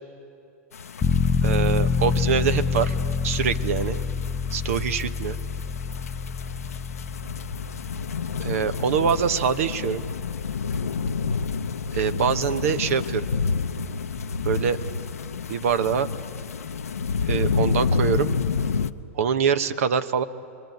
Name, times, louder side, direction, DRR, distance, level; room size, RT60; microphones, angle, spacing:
sound 1, 0.7-18.9, left 5 dB, 90° left, 0.8 m, -30 dB
sound 2, 1.0-13.5 13.9-14.0, left 6 dB, 20° left, 0.5 m, -28 dB
voice 1, 1.4-2.9 3.2-4.0 4.5-5.4 8.4-10.0 11.9-13.3 14.4-14.8 15.5-16.1 17.2-18.3 19.1-20.2, right 7 dB, 70° right, 11 dB, 1.0 m, -24 dB
27.5 x 21.5 x 9.3 m, 2.6 s
hypercardioid pair, 105°, 8 cm